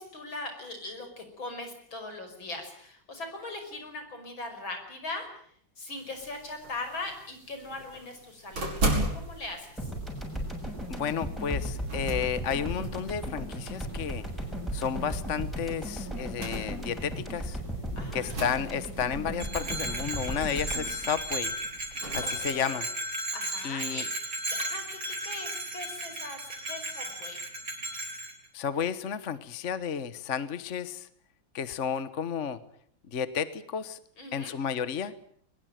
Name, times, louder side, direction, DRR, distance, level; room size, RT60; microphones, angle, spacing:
voice 1, 0.0-8.7 9.1-9.9 18.0-18.4 22.2-22.8 23.3-24.1 24.5-27.4 34.2-34.5, left 2 dB, 75° left, 6 dB, 6.4 m, -40 dB
sound 1, 5.9-22.4, right 1 dB, 85° right, 6.1 m, -39 dB
sound 2, 9.8-22.2, equal, ahead, 7.0 m, -36 dB
voice 2, 10.9-14.2 14.7-17.6 18.1-21.5 22.1-22.9 23.6-24.0 28.5-31.1 31.5-32.6 33.1-34.0 34.3-35.1, left 7 dB, 45° left, 14 dB, 1.3 m, -32 dB
Bell, 19.4-28.3, right 1 dB, 45° right, 4.9 m, -35 dB
22.5 x 20.5 x 9.1 m, 0.63 s
omnidirectional pair, 2.2 m